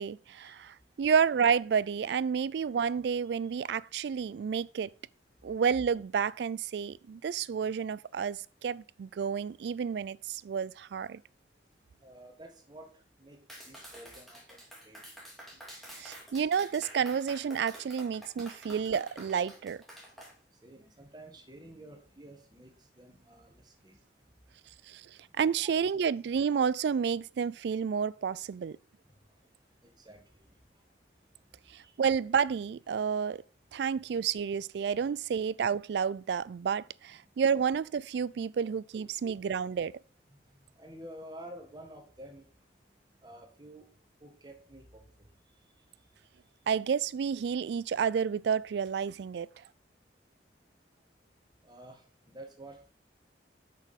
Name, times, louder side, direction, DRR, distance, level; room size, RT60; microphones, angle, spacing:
voice 1, 0.0-4.9 5.4-11.2 16.0-19.8 24.9-25.0 25.4-28.8 31.7-33.4 33.7-39.9 46.7-49.5, right 7 dB, 65° right, 0.3 m, -30 dB
voice 2, 12.0-13.4 13.7-15.0 20.6-24.0 25.6-25.7 29.8-30.8 31.7-32.0 38.9-39.0 40.3-40.4 40.8-42.5 43.2-43.9 44.2-45.3 51.6-52.9, right 1 dB, 25° right, 1.6 m, -50 dB
Clapping, 13.5-20.3, equal, ahead, 2.3 m, -49 dB
6.5 x 6.2 x 5.3 m
head